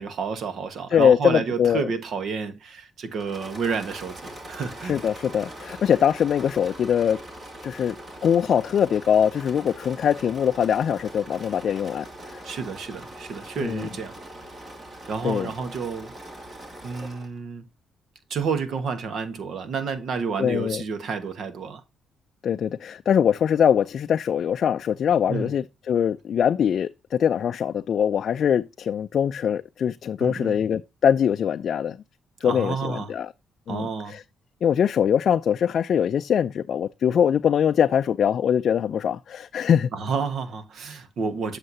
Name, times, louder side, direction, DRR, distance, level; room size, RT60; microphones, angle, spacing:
voice 1, 0.0-4.9 12.4-14.2 15.1-16.1 16.8-17.6 18.3-21.8 25.3-25.5 30.2-30.6 32.4-33.2 33.7-34.2 39.9-41.6, right 5 dB, 65° right, 1.3 m, -30 dB
voice 2, 0.9-1.8 4.8-7.2 7.6-8.0 8.2-12.1 12.3-12.4 13.6-13.9 15.2-15.5 20.4-20.8 22.4-32.0 32.4-33.3 33.7-34.2 34.6-39.9, left 8 dB, 60° left, 0.3 m, -22 dB
Engine / Mechanisms, 3.1-17.4, right 1 dB, 40° right, 2.5 m, -42 dB
7.8 x 6.5 x 2.7 m
cardioid pair, 90°, 0 cm